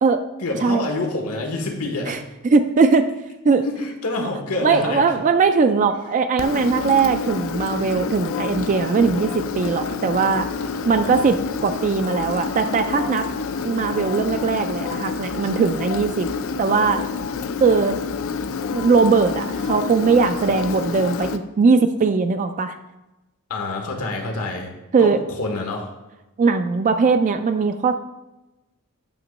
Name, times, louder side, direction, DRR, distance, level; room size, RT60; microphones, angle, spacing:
voice 1, 0.4-2.2 3.6-5.2 10.6-11.3 23.5-24.7 25.0-25.9, left 2 dB, 80° left, 2 dB, 1.2 m, -27 dB
voice 2, 2.4-3.1 3.4-3.6 4.2-4.3 4.6-10.5 10.9-13.3 13.6-16.3 16.6-17.0 17.6-18.0 18.7-22.7 24.9-25.2 26.4-27.9, right 4 dB, 35° right, 8 dB, 0.3 m, -19 dB
Engine, 6.4-21.4, left 5 dB, 65° left, 0.4 m, -28 dB
8.9 x 3.0 x 6.4 m, 1.0 s
head